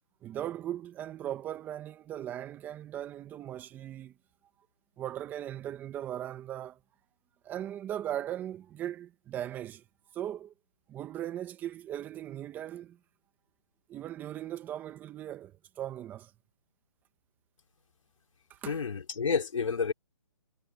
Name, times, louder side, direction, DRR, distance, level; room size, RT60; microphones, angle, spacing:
voice 1, 0.2-4.1 5.0-6.8 7.4-9.8 10.1-10.5 10.9-13.0 13.9-15.5 15.8-16.3 18.5-18.8, right 11 dB, 10° right, 1.2 m, -38 dB
voice 2, 18.6-19.9, left 5 dB, 70° left, 4.2 m, -30 dB
hypercardioid pair, 160°, 17 cm